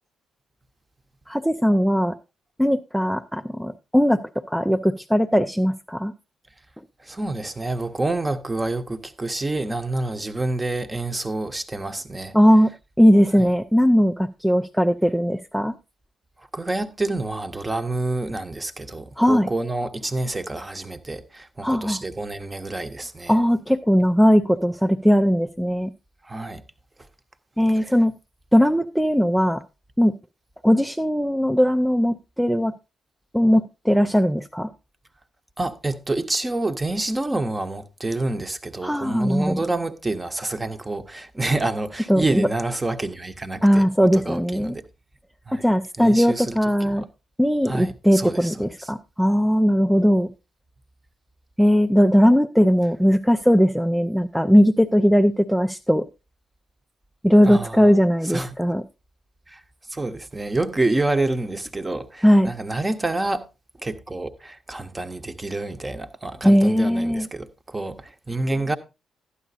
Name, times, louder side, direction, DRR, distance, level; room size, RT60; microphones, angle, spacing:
voice 1, 1.3-2.2 2.6-4.2 4.5-6.1 12.3-12.7 13.0-15.7 19.2-19.5 21.6-22.0 23.3-25.9 27.6-28.1 28.5-29.6 30.0-30.1 30.6-32.7 33.3-34.7 38.8-39.6 42.1-42.5 43.6-44.7 45.5-47.0 47.4-50.3 51.6-56.0 57.2-58.8 62.2-62.5 66.4-67.3, equal, ahead, 0.4 m, -19 dB
voice 2, 7.0-12.4 13.4-13.5 16.4-23.4 26.2-26.6 27.7-27.9 35.6-43.9 44.1-44.8 45.5-45.6 46.0-47.1 47.6-48.9 57.4-57.9 58.2-58.6 59.5-59.6 59.9-63.5 63.8-68.8, right 2 dB, 20° right, 0.9 m, -28 dB
12.5 x 9.8 x 2.7 m
figure-of-eight pair, 40°, 0 cm